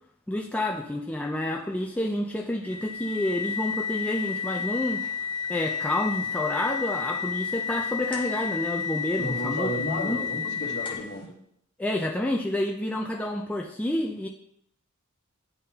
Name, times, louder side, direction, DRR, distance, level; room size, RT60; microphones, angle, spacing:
voice 1, 0.3-5.0 5.5-10.3 11.8-14.3, left 1 dB, 5° left, 0 dB, 0.4 m, -29 dB
sound 1, 2.6-11.2, left 7 dB, 25° left, 1.0 m, -31 dB
voice 2, 9.2-11.3, left 1 dB, 55° left, 0 dB, 1.2 m, -33 dB
9.4 x 3.7 x 2.8 m, 0.71 s
head